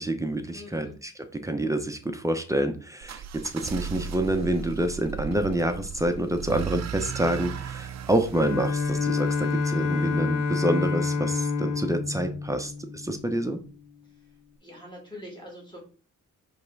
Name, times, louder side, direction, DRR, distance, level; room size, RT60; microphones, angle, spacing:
voice 1, 0.0-13.6, right 1 dB, 10° right, 7 dB, 0.7 m, -27 dB
voice 2, 0.5-1.0 14.6-15.8, left 1 dB, 15° left, -1 dB, 2.4 m, -43 dB
sound 1, 3.0-9.9, right 7 dB, 55° right, 0.5 m, -36 dB
Bowed string instrument, 8.3-13.4, left 4 dB, 70° left, 0.7 m, -28 dB
5.3 x 3.4 x 5.3 m, 0.37 s
wide cardioid pair, 145°, 33 cm